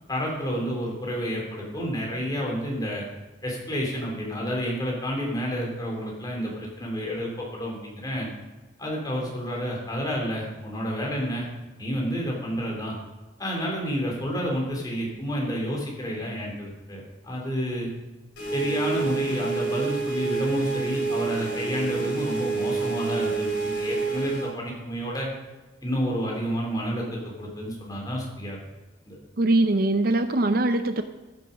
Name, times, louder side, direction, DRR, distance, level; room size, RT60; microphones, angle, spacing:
voice 1, 0.1-3.0 3.4-8.3 8.8-11.5 11.8-12.9 13.4-17.9 18.5-25.3 25.8-28.6 29.0-29.2, equal, 20° left, -2 dB, 3.5 m, -30 dB
sound 1, 18.4-24.5, right 4 dB, 65° left, 3.5 m, -28 dB
voice 2, 29.4-31.0, right 2 dB, 50° right, 9 dB, 0.6 m, -22 dB
15.0 x 8.0 x 5.4 m, 1.2 s
head